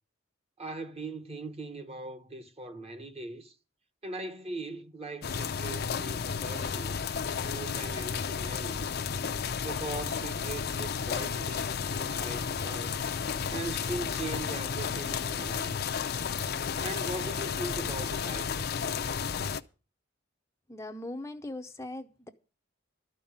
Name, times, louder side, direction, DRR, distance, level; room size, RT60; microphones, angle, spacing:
voice 1, 0.6-3.5 4.0-7.1 7.4-8.9 9.6-13.0 13.5-16.0 16.8-18.7, right 2 dB, 30° right, 1.1 m, -40 dB
sound 1, 5.2-19.6, left 6 dB, 55° left, 0.6 m, -32 dB
voice 2, 20.7-22.3, left 1 dB, 15° left, 0.6 m, -40 dB
12.5 x 5.5 x 8.8 m
head